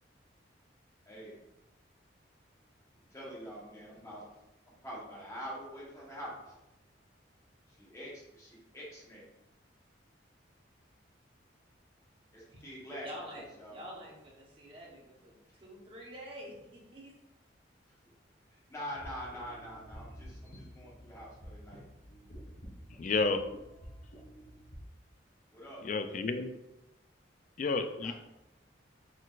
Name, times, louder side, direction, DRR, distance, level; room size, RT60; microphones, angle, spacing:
voice 1, 1.0-1.4 3.1-6.6 7.7-9.3 12.3-13.1 13.6-13.9 15.5-15.6 18.5-21.8 25.5-25.9 28.0-28.1, equal, 15° left, -6 dB, 1.3 m, -45 dB
voice 2, 13.0-13.4 13.7-17.1, equal, 30° right, -3 dB, 1.0 m, -47 dB
sound 1, 18.9-24.8, equal, 75° left, 1.2 m, -50 dB
voice 3, 23.0-23.4 25.8-26.5 27.6-28.1, left 3 dB, 40° left, 9 dB, 0.3 m, -30 dB
4.2 x 3.9 x 2.4 m, 0.92 s
head